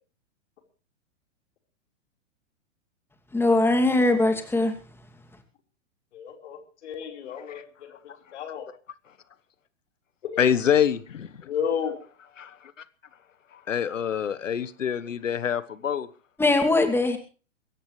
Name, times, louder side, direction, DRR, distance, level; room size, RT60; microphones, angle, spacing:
voice 1, 3.3-4.7 16.4-17.2, left 2 dB, 5° left, 5 dB, 2.6 m, -21 dB
voice 2, 6.1-7.6 8.3-8.7 11.4-12.0, left 7 dB, 60° left, 3 dB, 4.6 m, -31 dB
voice 3, 10.4-11.5 12.4-12.7 13.7-16.1, left 8 dB, 80° left, 16 dB, 1.3 m, -26 dB
22.0 x 17.0 x 3.3 m, 0.38 s
hypercardioid pair, 115°, 37 cm